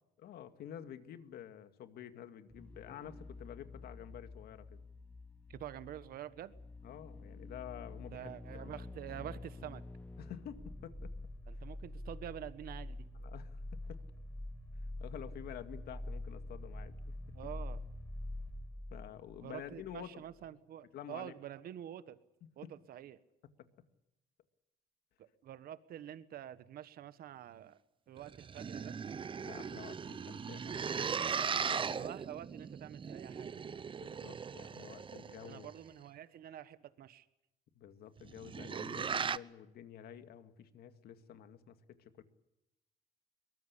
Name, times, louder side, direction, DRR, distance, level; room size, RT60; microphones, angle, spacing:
voice 1, 0.2-4.8 6.8-8.3 8.5-8.8 10.2-11.1 13.1-14.0 15.0-17.1 18.9-20.2 20.9-21.3 22.6-22.7 29.4-31.0 31.5-32.1 34.0-35.7 37.8-42.2, left 10 dB, 70° left, 9 dB, 2.2 m, -50 dB
sound 1, 2.5-20.0 20.3-20.4, left 2 dB, 10° left, 1.3 m, -46 dB
voice 2, 5.5-6.5 8.1-9.8 11.5-13.1 17.3-17.8 19.4-22.2 22.6-23.2 25.4-27.8 28.1-28.9 31.9-33.8 35.5-37.2, right 11 dB, 60° right, 14 dB, 1.4 m, -47 dB
sound 2, 28.2-35.8 38.2-39.4, right 6 dB, 30° right, 0.8 m, -38 dB
22.5 x 20.0 x 8.4 m, 0.90 s
cardioid pair, 110°, 17 cm